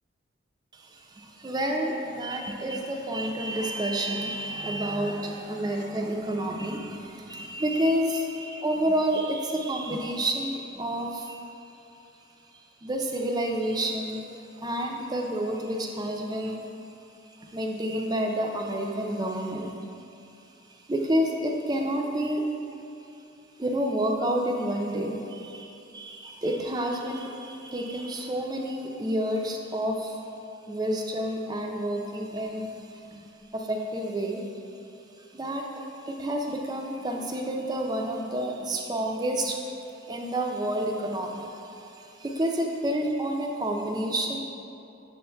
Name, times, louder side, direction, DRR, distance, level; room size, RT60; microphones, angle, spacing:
voice 1, 0.7-11.4 12.8-16.6 17.4-19.7 20.7-22.4 23.6-30.2 30.7-33.3 33.5-34.5 35.3-39.6 40.0-44.4, right 1 dB, 20° right, 2 dB, 0.4 m, -29 dB
7.0 x 6.8 x 2.2 m, 2.7 s
head